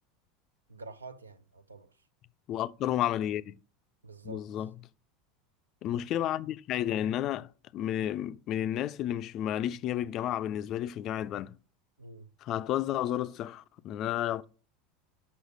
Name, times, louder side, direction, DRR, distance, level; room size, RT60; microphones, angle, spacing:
voice 1, 0.7-2.1 4.0-4.5 12.0-12.3, right 3 dB, 80° right, 0.6 m, -47 dB
voice 2, 2.5-3.6 4.2-4.7 5.8-11.5 12.4-14.5, left 11 dB, 40° left, 0.3 m, -32 dB
6.3 x 5.5 x 6.0 m
figure-of-eight pair, 75°, 0 cm